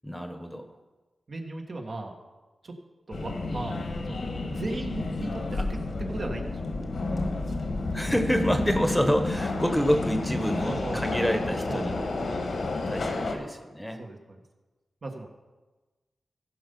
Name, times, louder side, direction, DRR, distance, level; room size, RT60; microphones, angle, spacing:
voice 1, 0.0-0.7 7.9-12.0 12.9-14.0, equal, 5° left, 6 dB, 1.1 m, -27 dB
voice 2, 1.3-2.1 2.6-2.7 3.1-3.8 4.1-7.6 10.6-11.3 11.7-11.9 14.0-14.4 15.0-15.3, right 2 dB, 60° right, 1 dB, 1.6 m, -37 dB
Subway metro underground, 3.1-13.3, left 2 dB, 75° left, 1.5 m, -31 dB
15.0 x 5.6 x 5.4 m, 1.2 s
cardioid pair, 50°, 0 cm